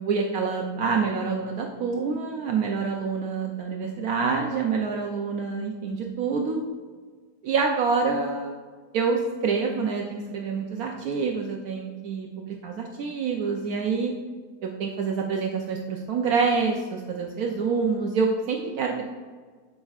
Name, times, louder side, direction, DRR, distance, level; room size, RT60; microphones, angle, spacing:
voice 1, 0.0-6.6 7.4-8.6 8.9-14.1 14.6-19.0, right 5 dB, 70° right, 1 dB, 1.1 m, -27 dB
11.5 x 5.2 x 2.4 m, 1.5 s
omnidirectional pair, 1.7 m